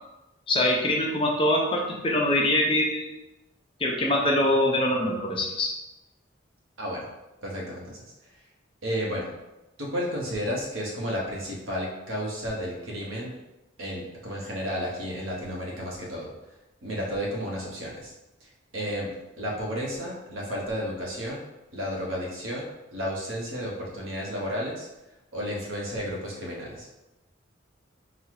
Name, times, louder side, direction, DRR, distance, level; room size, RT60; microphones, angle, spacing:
voice 1, 0.5-3.1 3.8-5.7, left 1 dB, 25° left, -1 dB, 0.6 m, -24 dB
voice 2, 7.4-8.0 8.8-9.3 9.8-13.4 13.8-16.3 16.8-18.1 18.4-21.4 21.7-24.9 25.3-26.9, equal, 85° right, -3 dB, 1.2 m, -32 dB
4.0 x 2.4 x 4.7 m, 0.98 s
head